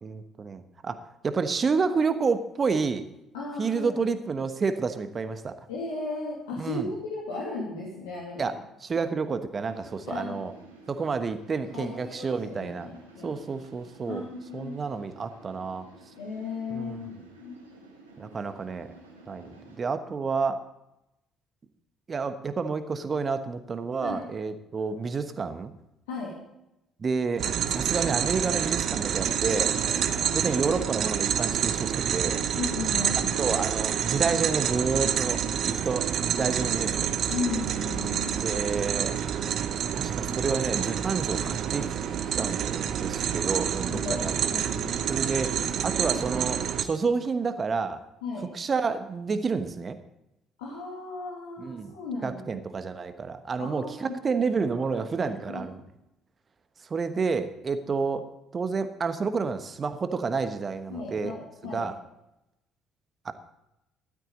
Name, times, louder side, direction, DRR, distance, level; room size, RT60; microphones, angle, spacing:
voice 1, 0.0-1.0 1.2-3.1 3.6-5.6 6.6-6.9 8.4-8.5 8.8-10.5 10.9-12.9 13.2-14.2 14.5-15.9 16.7-17.1 18.2-18.9 19.3-19.5 19.8-20.6 22.1-25.7 27.0-29.7 30.3-32.4 33.4-36.9 38.4-39.1 39.9-41.9 42.4-44.6 45.1-45.6 45.8-48.0 48.5-50.0 51.6-51.9 52.2-55.8 56.8-58.3 58.5-61.3 61.7-62.0 63.2-63.3, right 5 dB, 35° right, 10 dB, 1.2 m, -29 dB
voice 2, 3.3-4.0 5.7-8.6 10.1-10.5 11.7-13.3 14.1-14.8 16.2-17.6 24.0-24.2 26.1-26.3 29.7-30.3 32.5-33.4 36.3-36.6 37.3-38.5 43.9-45.0 48.2-48.4 50.6-52.6 53.6-54.2 55.2-55.6 60.9-61.9, left 3 dB, 75° left, -6 dB, 2.7 m, -36 dB
sound 1, 9.6-19.8, right 2 dB, 85° right, 1.7 m, -52 dB
sound 2, 27.4-46.8, right 9 dB, 55° right, 0.8 m, -28 dB
13.5 x 12.5 x 3.9 m, 0.88 s
figure-of-eight pair, 50°, 0 cm